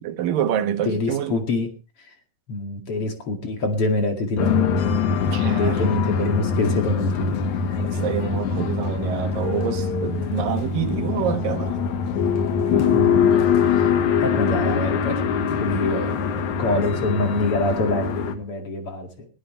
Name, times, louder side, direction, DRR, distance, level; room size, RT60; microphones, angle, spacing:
voice 1, 0.0-1.3 5.3-5.8 8.0-11.7 16.7-16.9, right 10 dB, 80° right, 3.1 m, -27 dB
voice 2, 0.8-1.7 2.5-4.8 5.4-7.4 7.7-7.8 12.7-13.9 14.1-15.2 15.6-16.2 16.6-19.3, left 2 dB, 45° left, 2.9 m, -25 dB
sound 1, 4.4-18.4, left 6 dB, 65° left, 2.7 m, -23 dB
21.5 x 13.5 x 3.2 m
omnidirectional pair, 3.9 m